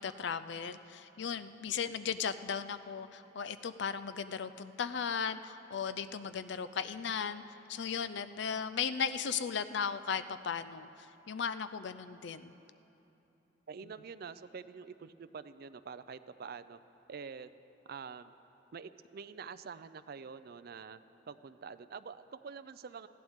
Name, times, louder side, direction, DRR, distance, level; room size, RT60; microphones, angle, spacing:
voice 1, 0.0-7.4 7.7-10.9 11.3-12.5, left 6 dB, 65° left, 13 dB, 0.5 m, -36 dB
voice 2, 13.7-16.8 17.1-17.5 17.9-18.3 18.7-21.0 21.3-23.1, right 5 dB, 55° right, 12 dB, 0.4 m, -46 dB
20.0 x 14.5 x 3.6 m, 3.0 s
head